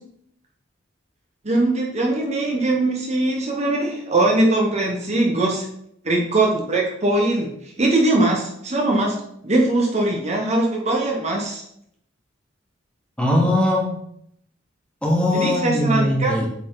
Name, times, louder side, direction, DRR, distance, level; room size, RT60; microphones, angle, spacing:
voice 1, 1.4-5.7 6.0-7.5 7.8-9.2 9.4-11.6 15.3-16.4, right 2 dB, 35° right, 0 dB, 1.0 m, -21 dB
voice 2, 13.2-13.9 15.0-16.5, left 1 dB, 5° left, -3 dB, 1.7 m, -20 dB
8.2 x 4.2 x 4.0 m, 0.72 s
head